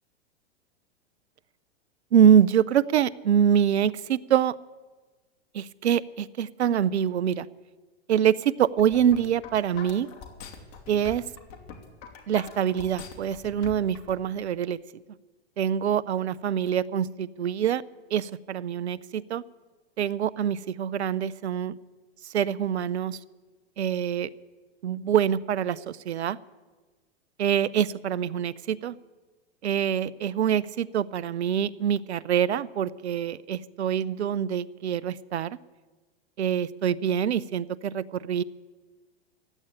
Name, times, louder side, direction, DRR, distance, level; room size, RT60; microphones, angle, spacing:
voice 1, 2.1-4.5 5.5-7.5 8.1-10.1 10.9-11.2 12.3-14.8 15.6-17.8 18.1-19.4 20.0-21.7 22.2-23.2 23.8-24.3 24.8-26.4 27.4-29.0 29.6-35.6 36.4-38.4, right 9 dB, 80° right, 20 dB, 0.7 m, -25 dB
sound 1, 8.6-14.1, left 6 dB, 45° left, 2.8 m, -43 dB
15.5 x 8.9 x 9.8 m, 1.3 s
hypercardioid pair, 105°, 33 cm